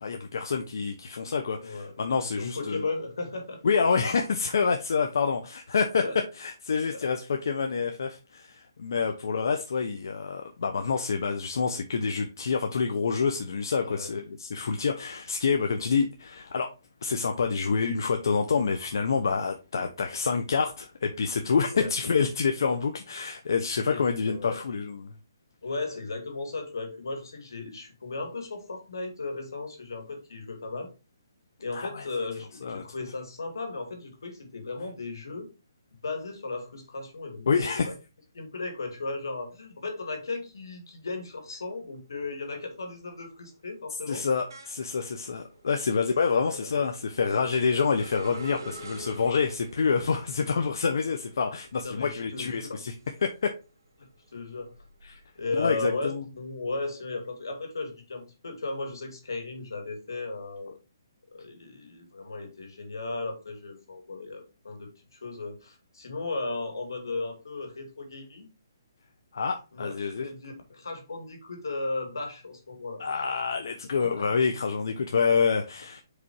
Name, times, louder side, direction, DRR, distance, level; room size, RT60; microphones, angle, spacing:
voice 1, 0.0-2.8 3.6-6.0 6.4-16.7 17.0-25.1 31.7-32.1 32.6-32.8 37.5-37.9 44.1-52.9 53.2-53.5 55.0-55.2 55.5-56.2 69.3-70.3 73.0-76.0, left 5 dB, 70° left, 0.8 m, -27 dB
voice 2, 1.6-1.9 2.2-3.6 6.0-6.2 6.9-7.1 13.8-14.1 21.7-21.9 23.9-24.6 25.6-30.9 31.6-35.5 36.0-37.5 37.9-38.0 38.3-44.2 45.9-46.7 51.7-52.8 54.3-54.8 55.4-60.7 61.3-68.5 69.7-73.0 74.0-74.3, left 3 dB, 90° left, 2.3 m, -36 dB
sound 1, 41.6-42.0 42.4-53.6 54.0-55.8, right 1 dB, 75° right, 2.1 m, -47 dB
5.0 x 4.2 x 4.6 m
hypercardioid pair, 165°, 2 cm